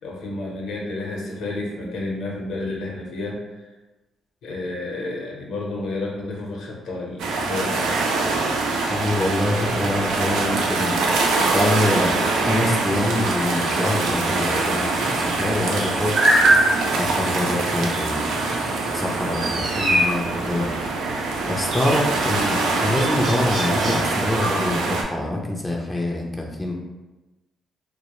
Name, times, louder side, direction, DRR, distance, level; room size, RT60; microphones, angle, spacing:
voice 1, 0.0-3.4 4.4-7.8, left 2 dB, 80° left, -2 dB, 0.6 m, -30 dB
sound 1, 7.2-25.0, right 3 dB, 85° right, 0.3 m, -24 dB
voice 2, 8.9-11.0 11.5-16.2 17.0-20.7 21.4-26.7, left 1 dB, 10° left, -1 dB, 0.4 m, -25 dB
sound 2, 12.7-24.9, right 1 dB, 50° right, 0.7 m, -26 dB
2.2 x 2.0 x 2.9 m, 1.1 s
cardioid pair, 90°, 0 cm